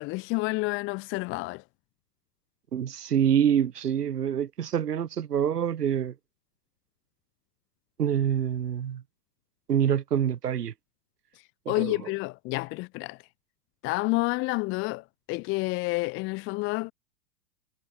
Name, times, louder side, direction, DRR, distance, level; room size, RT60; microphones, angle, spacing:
voice 1, 0.0-1.6 11.7-13.2 13.8-16.9, left 24 dB, 30° left, 0.6 m, -29 dB
voice 2, 2.7-6.1 8.0-9.0 9.7-10.7 11.6-12.0, right 9 dB, 90° right, 1.4 m, -26 dB
hypercardioid pair, 115°, 46 cm